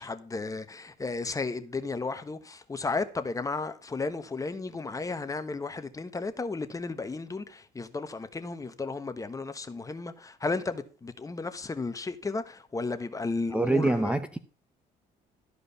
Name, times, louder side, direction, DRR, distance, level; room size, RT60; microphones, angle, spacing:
voice 1, 0.0-14.1, left 3 dB, 20° left, 1.2 m, -34 dB
voice 2, 13.5-14.4, right 2 dB, 5° right, 0.7 m, -25 dB
13.0 x 5.0 x 6.8 m
cardioid pair, 110°, 17 cm